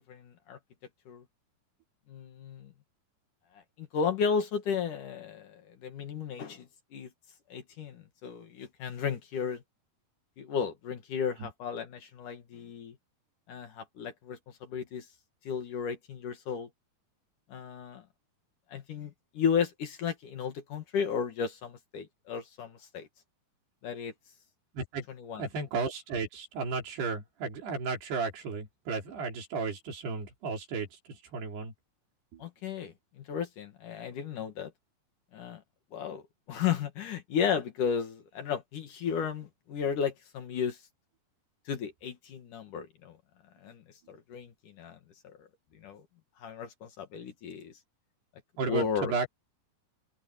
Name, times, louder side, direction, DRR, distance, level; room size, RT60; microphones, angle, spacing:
voice 1, 0.1-0.6 1.1-1.2 2.1-2.7 3.5-7.1 7.5-9.6 10.4-13.0 13.5-15.1 15.4-16.7 17.5-18.0 18.7-23.1 23.8-24.1 25.1-25.4 32.4-34.7 35.3-35.6 35.9-36.2 36.5-40.8 41.7-43.2 43.6-43.8 44.1-45.0 45.2-45.5 45.8-46.0 46.4-47.7 48.7-49.1, left 7 dB, 60° left, 3.1 m, -34 dB
voice 2, 24.7-25.1 25.4-31.7 32.3-32.4 48.6-49.3, right 4 dB, 80° right, 6.2 m, -34 dB
omnidirectional pair, 4.6 m